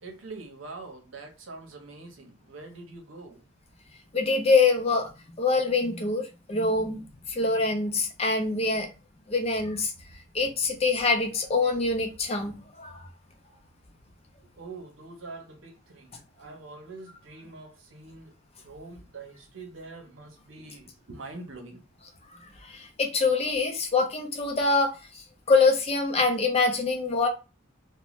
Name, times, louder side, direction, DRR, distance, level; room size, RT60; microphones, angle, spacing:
voice 1, 0.0-3.4 14.6-18.3 18.6-21.8, right 3 dB, 75° right, 0.7 m, -44 dB
voice 2, 4.1-5.1 5.4-8.9 9.3-9.9 10.3-13.0 22.6-27.3, left 3 dB, 30° left, 0.5 m, -25 dB
2.5 x 2.1 x 3.0 m
head